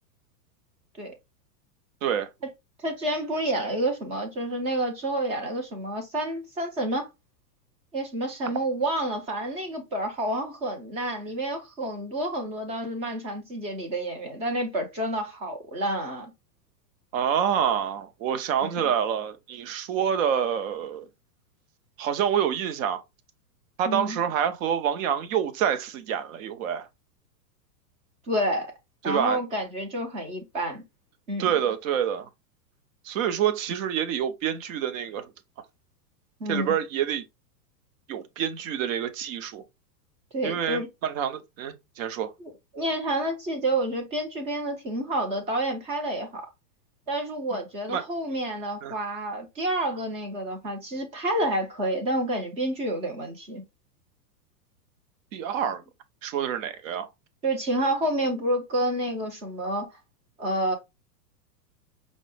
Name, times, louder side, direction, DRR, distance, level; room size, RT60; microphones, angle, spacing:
voice 1, 2.8-7.1 7.9-16.3 18.6-18.9 23.9-24.2 28.3-28.7 29.0-30.8 31.3-31.5 36.4-36.7 40.3-40.9 42.7-46.5 47.1-53.6 57.4-59.9 60.4-60.8, right 1 dB, 15° right, 0.4 m, -29 dB
voice 2, 17.1-21.1 22.0-23.0 23.8-26.9 29.0-29.4 31.4-32.3 33.0-35.3 36.5-37.2 38.1-39.6 40.4-42.3 47.9-48.1 48.8-48.9 55.3-55.8 56.2-57.1, right 9 dB, 50° right, 0.7 m, -27 dB
5.2 x 2.0 x 3.2 m
hypercardioid pair, 140°, 50 cm